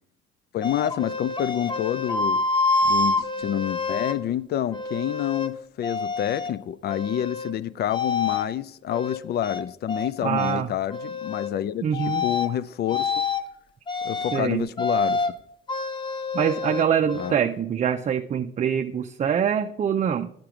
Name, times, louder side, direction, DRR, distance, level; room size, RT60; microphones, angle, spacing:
voice 1, 0.5-2.4 2.8-13.2 14.0-15.3 17.2-17.3, left 11 dB, 55° left, 0.4 m, -28 dB
sound 1, 0.6-4.2 4.7-5.5 5.8-6.5 6.9-7.5 7.9-8.5 8.9-10.1 10.4-10.6 10.9-11.5 11.9-12.5 12.9-13.4 13.9-14.4 14.8-15.3 15.7-17.3, left 3 dB, 25° left, 0.8 m, -27 dB
voice 2, 10.2-10.7 11.8-12.2 14.3-14.7 16.3-20.3, right 8 dB, 40° right, 0.5 m, -24 dB
8.9 x 5.9 x 4.8 m
cardioid pair, 80°, 19 cm